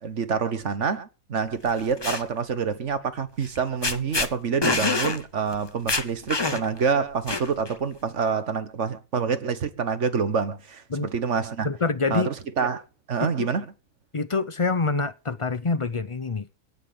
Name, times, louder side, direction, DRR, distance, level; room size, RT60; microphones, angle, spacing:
voice 1, 0.0-11.7 12.1-12.8 13.1-13.6, right 6 dB, 50° right, 1.5 m, -27 dB
sound 1, 1.7-2.2 3.4-3.6 3.8-4.3 4.6-5.2 5.5-5.6 5.9-6.8 7.3-7.7, left 3 dB, 20° left, 0.8 m, -25 dB
voice 2, 11.6-12.3 13.2-13.5 14.1-16.6, left 4 dB, 45° left, 0.4 m, -26 dB
16.5 x 5.8 x 8.6 m
omnidirectional pair, 1.7 m